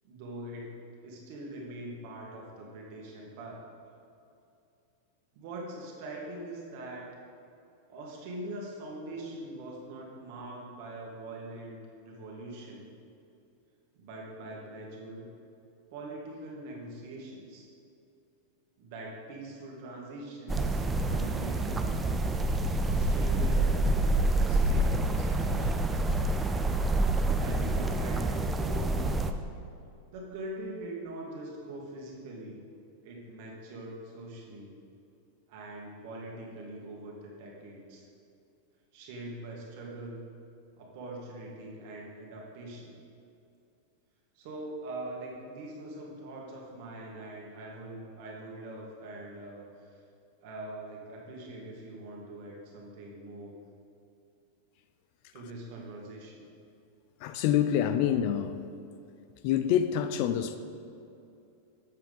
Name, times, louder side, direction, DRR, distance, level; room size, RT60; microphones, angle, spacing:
voice 1, 0.0-0.8 1.0-3.7 5.4-7.1 7.9-12.9 14.0-15.3 15.9-17.7 18.8-21.9 22.8-26.1 27.4-29.2 30.1-32.6 33.0-34.7 35.5-38.1 38.9-40.3 40.8-43.0 44.3-50.0 50.4-53.6 55.3-56.5, right 1 dB, 55° right, -2 dB, 1.9 m, -43 dB
sound 1, 20.5-29.3, right 2 dB, 10° right, 0.4 m, -27 dB
voice 2, 57.2-58.6 59.4-60.6, left 10 dB, 50° left, 10 dB, 0.5 m, -26 dB
7.5 x 5.8 x 5.5 m, 2.6 s
supercardioid pair, 150°, 0 cm